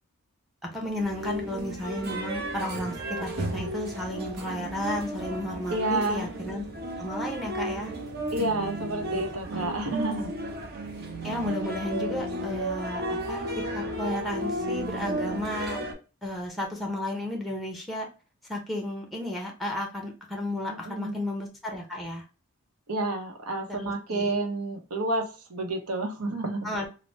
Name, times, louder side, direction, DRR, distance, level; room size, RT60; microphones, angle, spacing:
voice 1, 0.6-6.6 7.0-7.9 9.1-9.2 9.5-9.6 11.2-15.8 16.2-18.1 18.5-22.2 23.7-24.3 26.6-26.9, left 1 dB, ahead, 1 dB, 0.5 m, -33 dB
sound 1, 1.0-15.9, right 1 dB, 45° right, 0.5 m, -33 dB
voice 2, 5.7-6.3 8.3-10.4 20.7-21.2 22.9-26.7, right 2 dB, 90° right, 3 dB, 0.7 m, -30 dB
3.2 x 2.0 x 2.6 m, 0.34 s
head